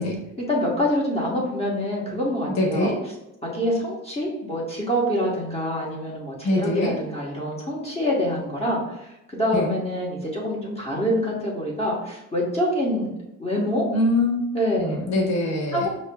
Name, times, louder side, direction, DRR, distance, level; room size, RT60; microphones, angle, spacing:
voice 1, 0.0-2.9 3.4-13.1 13.4-13.9 14.5-15.0 15.7-15.9, equal, 20° left, -5 dB, 1.2 m, -26 dB
voice 2, 2.6-3.0 6.4-6.9 9.5-9.7 13.9-14.3 14.8-15.9, left 1 dB, 65° left, 0 dB, 1.1 m, -23 dB
5.4 x 2.1 x 2.2 m, 0.91 s
cardioid pair, 90°, 30 cm